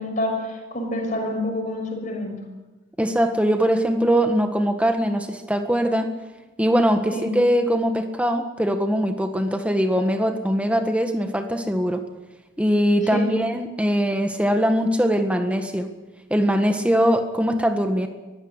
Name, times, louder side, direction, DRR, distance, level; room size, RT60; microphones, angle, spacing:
voice 1, 0.0-2.4 7.1-7.3 13.1-13.3, left 1 dB, 40° left, 1 dB, 6.2 m, -27 dB
voice 2, 3.0-6.1 6.6-12.0 12.6-15.9 16.3-18.1, equal, 5° right, 6 dB, 1.6 m, -21 dB
22.5 x 15.5 x 8.2 m, 1.2 s
head